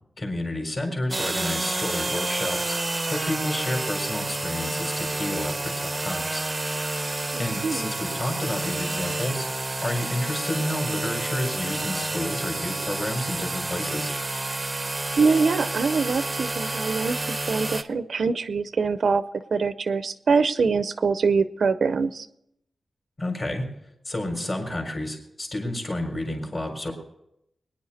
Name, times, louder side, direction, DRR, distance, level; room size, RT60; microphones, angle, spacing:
voice 1, 0.2-2.8 3.1-6.4 7.4-9.5 9.8-14.1 23.2-23.7 24.0-26.9, left 1 dB, 35° left, 2 dB, 4.1 m, -30 dB
sound 1, 1.1-17.8, right 2 dB, 20° right, 0.7 m, -29 dB
voice 2, 7.3-7.9 15.2-19.2 19.5-22.3, right 4 dB, 65° right, 12 dB, 0.6 m, -24 dB
24.5 x 10.0 x 4.2 m, 0.80 s
wide cardioid pair, 120°, 0 cm